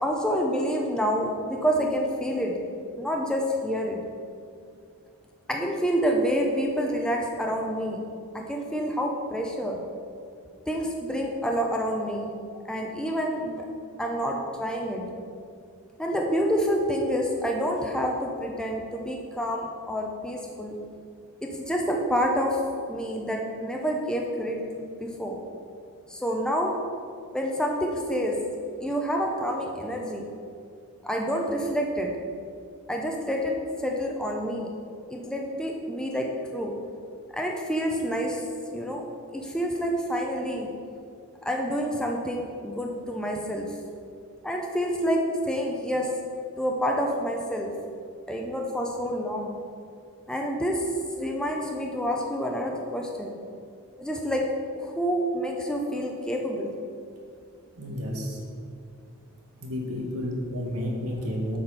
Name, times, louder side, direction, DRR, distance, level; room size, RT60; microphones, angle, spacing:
voice 1, 0.0-2.6 3.0-4.0 5.5-8.0 8.3-9.8 10.7-12.3 12.6-13.7 14.0-15.1 16.0-20.8 21.4-22.6 22.9-25.4 26.1-26.7 27.3-28.4 28.8-30.3 31.0-32.1 32.9-33.5 33.8-34.7 35.1-36.3 36.5-36.7 37.3-38.4 38.7-39.0 39.3-40.7 41.4-43.8 44.4-46.1 46.6-47.7 48.3-49.6 50.3-50.9 51.2-53.4 54.0-54.4 54.7-56.7, equal, 5° left, 0 dB, 0.5 m, -28 dB
voice 2, 57.8-58.4 59.6-61.6, left 1 dB, 90° right, 0 dB, 1.4 m, -31 dB
7.7 x 4.2 x 5.6 m, 2.4 s
head